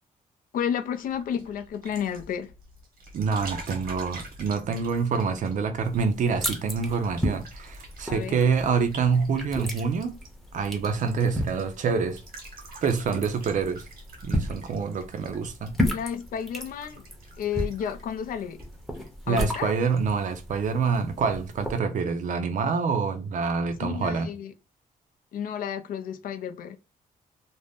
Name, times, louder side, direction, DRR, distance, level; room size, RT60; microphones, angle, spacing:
voice 1, 0.5-2.5 8.1-8.4 15.9-17.0 17.4-18.6 19.3-19.7 23.8-24.5 25.3-26.8, left 8 dB, 70° left, 0.4 m, -31 dB
sound 1, 0.9-19.3 19.6-20.0, right 2 dB, 80° right, 1.1 m, -47 dB
voice 2, 3.1-10.2 10.5-12.2 12.8-13.9 14.2-15.7 19.3-24.3, right 5 dB, 60° right, 0.5 m, -26 dB
sound 2, 5.8-21.8, equal, ahead, 0.6 m, -35 dB
2.6 x 2.0 x 3.3 m
cardioid pair, 120°, 15 cm